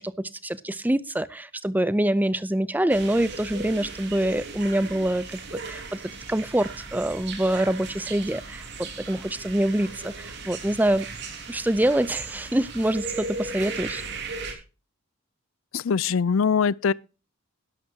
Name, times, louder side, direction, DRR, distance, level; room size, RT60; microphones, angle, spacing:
voice 1, 0.0-6.0 6.3-11.1 11.5-14.0 14.5-14.6, right 1 dB, 10° right, 0.5 m, -25 dB
sound 1, 2.9-14.5, right 4 dB, 55° right, 2.9 m, -37 dB
voice 2, 15.7-16.9, left 6 dB, 75° left, 0.4 m, -22 dB
12.0 x 12.0 x 2.8 m
head